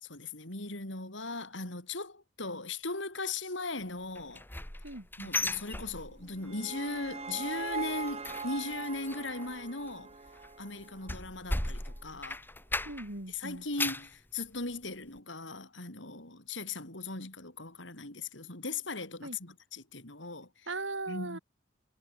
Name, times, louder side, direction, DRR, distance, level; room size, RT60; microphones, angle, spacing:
voice 1, 0.0-4.4 5.2-10.1 10.6-12.4 13.3-20.7 21.1-21.4, left 3 dB, 70° left, 5.7 m, -38 dB
sound 1, 4.1-6.5 6.8-7.1 7.4-13.2 13.5-14.1 14.6-14.7 15.2-15.3, left 2 dB, 10° left, 2.6 m, -37 dB
voice 2, 4.8-5.3 12.9-13.7 19.2-19.4 20.7-21.4, right 2 dB, 70° right, 3.9 m, -39 dB
sound 2, 6.1-11.3, right 4 dB, 35° right, 1.5 m, -41 dB
head